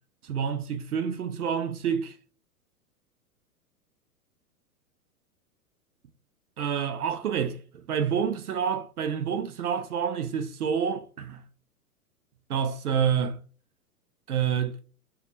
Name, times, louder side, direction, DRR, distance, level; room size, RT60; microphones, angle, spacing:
voice 1, 0.2-2.2 6.6-11.4 12.5-13.4 14.3-14.8, right 7 dB, 70° right, 0.6 m, -28 dB
3.5 x 2.3 x 2.8 m
figure-of-eight pair, 105°, 46 cm